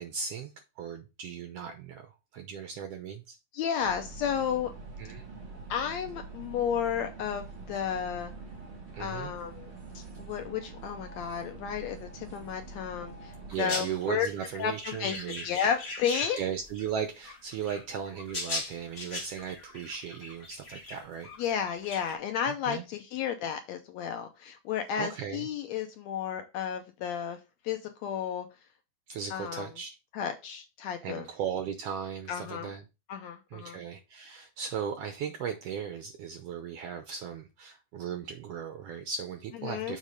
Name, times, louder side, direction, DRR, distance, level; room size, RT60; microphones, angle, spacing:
voice 1, 0.0-3.4 5.0-5.2 8.9-9.3 13.5-15.5 16.3-21.3 22.5-22.8 24.9-25.5 29.1-30.0 31.0-32.8 33.5-40.0, right 7 dB, 85° right, 1.3 m, -37 dB
voice 2, 3.5-4.7 5.7-8.3 9.0-14.3 14.6-16.4 21.4-27.4 27.6-28.5 29.3-29.7 30.1-31.3 32.3-32.7 33.1-33.8 39.6-40.0, left 8 dB, 75° left, 1.6 m, -32 dB
sound 1, 3.8-13.6, right 3 dB, 55° right, 0.7 m, -45 dB
sound 2, 13.5-16.9 17.2-22.1, left 2 dB, 45° left, 0.8 m, -40 dB
7.3 x 3.7 x 5.1 m
omnidirectional pair, 3.8 m